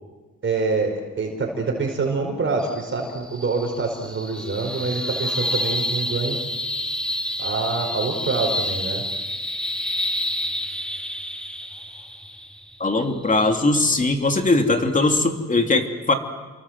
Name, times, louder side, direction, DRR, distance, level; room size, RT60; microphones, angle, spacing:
voice 1, 0.4-6.4 7.4-9.0, right 3 dB, 40° right, 2 dB, 5.2 m, -25 dB
sound 1, 2.6-15.2, left 1 dB, 5° left, 2.0 m, -29 dB
voice 2, 12.8-16.1, left 2 dB, 25° left, 4 dB, 3.1 m, -20 dB
29.5 x 24.5 x 7.7 m, 1.3 s
cardioid pair, 90°, 30 cm